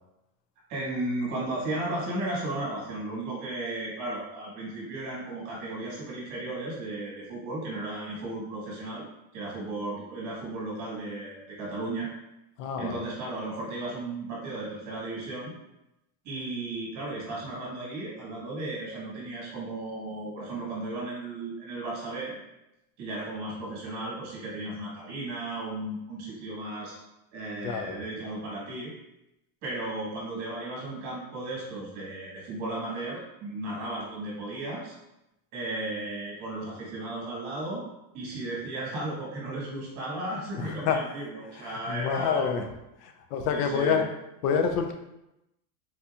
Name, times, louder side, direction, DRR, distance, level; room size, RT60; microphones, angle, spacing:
voice 1, 0.7-9.1 9.3-12.1 12.8-15.5 16.2-22.3 23.0-26.9 27.3-28.9 29.6-34.9 35.5-37.8 38.1-42.5 43.5-44.0, right 2 dB, 35° right, -5 dB, 1.4 m, -35 dB
voice 2, 12.6-13.0 27.6-28.0 40.6-41.0 41.5-42.7 43.0-44.0 44.4-44.9, left 6 dB, 70° left, 5 dB, 0.6 m, -27 dB
4.1 x 2.7 x 2.3 m, 0.89 s
supercardioid pair, 160°, 49 cm